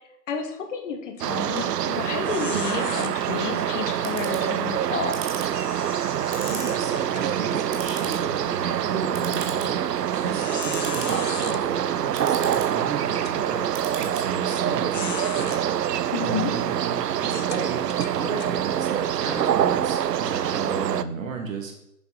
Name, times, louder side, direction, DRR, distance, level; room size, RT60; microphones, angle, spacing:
voice 1, 0.3-5.2 16.1-16.5, left 6 dB, 45° left, 5 dB, 1.5 m, -31 dB
sound 1, 1.2-1.4 1.8-1.9 2.2-3.1 5.5-7.8 8.2-8.4 9.0-9.1 10.1-11.6 12.5-12.6 13.1-13.4 14.4-14.6 14.9-15.6 16.3-16.4 17.2-18.5, left 8 dB, 75° left, 0.8 m, -37 dB
sound 2, 1.2-21.0, right 10 dB, 70° right, 0.6 m, -26 dB
Clock, 1.3-16.2, right 6 dB, 15° right, 0.7 m, -42 dB
voice 2, 6.4-9.8 10.1-13.6 14.0-15.6 16.2-17.8 18.1-21.7, right 4 dB, 50° right, 3 dB, 2.2 m, -33 dB
9.5 x 6.9 x 4.0 m, 0.79 s
figure-of-eight pair, 130°, 49 cm